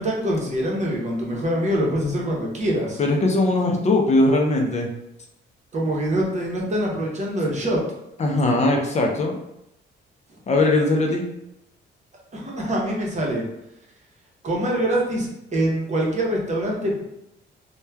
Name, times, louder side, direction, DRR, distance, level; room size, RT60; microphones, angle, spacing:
voice 1, 0.0-3.0 5.7-7.8 12.3-13.4 14.4-17.0, right 1 dB, 35° right, -2 dB, 0.8 m, -24 dB
voice 2, 3.0-4.9 8.2-9.4 10.5-11.3, left 2 dB, 35° left, 1 dB, 0.4 m, -20 dB
3.0 x 2.1 x 2.3 m, 0.84 s
cardioid pair, 90°, 20 cm